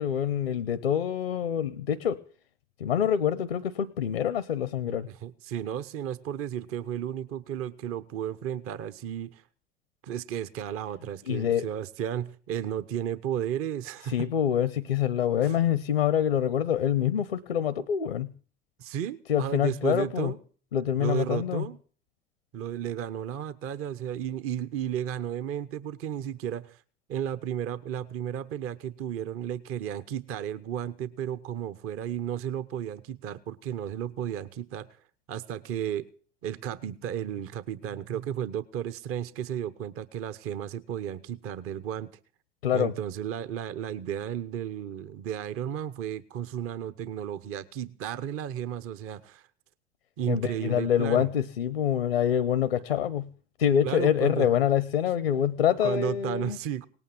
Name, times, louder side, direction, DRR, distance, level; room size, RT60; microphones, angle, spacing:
voice 1, 0.0-2.2 2.8-5.1 11.3-11.7 14.1-18.3 19.3-20.3 20.7-21.7 42.6-42.9 50.3-53.3 53.6-56.6, left 9 dB, 85° left, 18 dB, 0.7 m, -26 dB
voice 2, 4.9-9.4 10.0-14.3 15.4-15.5 18.8-20.4 21.0-21.8 22.5-26.8 27.1-34.9 35.3-36.1 36.4-42.1 42.7-49.4 50.2-51.3 53.8-54.5 55.8-56.9, right 10 dB, 50° right, 15 dB, 1.0 m, -33 dB
18.5 x 9.0 x 7.7 m, 0.41 s
figure-of-eight pair, 65°, 29 cm